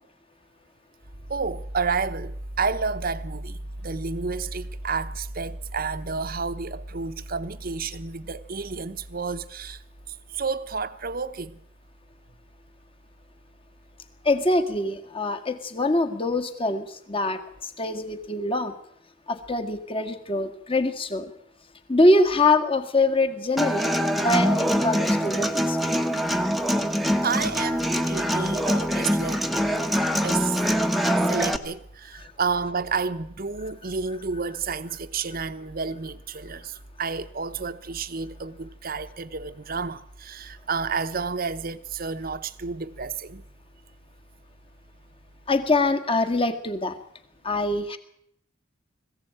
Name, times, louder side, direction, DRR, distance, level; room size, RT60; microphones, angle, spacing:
voice 1, 1.3-9.8 10.3-11.6 27.2-29.5 30.2-30.6 31.3-43.4, right 4 dB, 45° right, 1.0 m, -30 dB
voice 2, 14.2-18.7 19.3-21.3 21.9-25.8 32.2-32.3 45.5-47.0 47.4-48.0, left 2 dB, 25° left, 1.8 m, -24 dB
Human voice / Acoustic guitar, 23.6-31.6, equal, ahead, 1.1 m, -24 dB
21.0 x 15.5 x 8.9 m
head